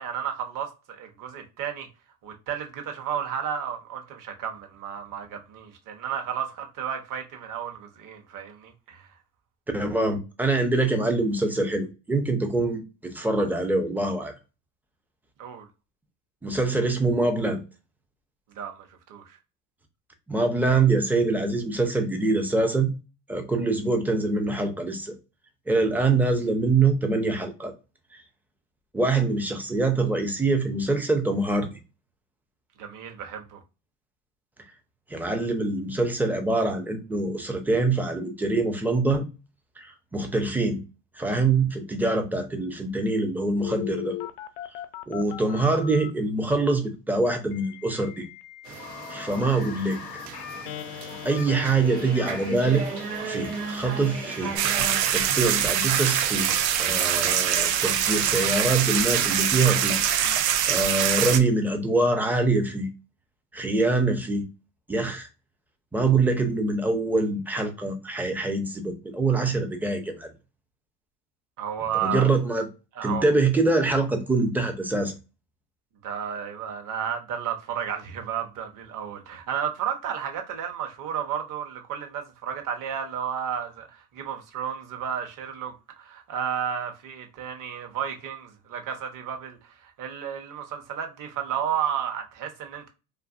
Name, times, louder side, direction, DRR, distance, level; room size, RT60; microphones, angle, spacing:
voice 1, 0.0-1.9 2.2-9.1 15.4-15.7 18.5-19.4 32.8-33.6 71.6-72.3 73.0-73.3 76.0-92.9, right 8 dB, 45° right, 0.9 m, -32 dB
voice 2, 9.7-14.3 16.4-17.6 20.3-22.9 23.3-25.1 25.7-27.7 28.9-31.7 35.1-39.3 39.8-40.8 41.2-44.2 45.1-48.3 49.1-50.0 51.2-52.9 53.2-54.5 55.1-56.5 56.8-60.0 60.3-62.9 63.5-64.5 64.9-65.3 65.9-70.3 71.9-72.7 73.0-75.1, right 3 dB, 5° right, 0.4 m, -24 dB
Telephone, 43.6-46.1 47.5-60.4, left 11 dB, 70° left, 0.6 m, -40 dB
sound 1, 48.6-55.0, right 5 dB, 85° right, 1.0 m, -36 dB
sound 2, 54.6-61.4, right 10 dB, 65° right, 0.6 m, -23 dB
2.5 x 2.5 x 2.4 m
hypercardioid pair, 85°, 47 cm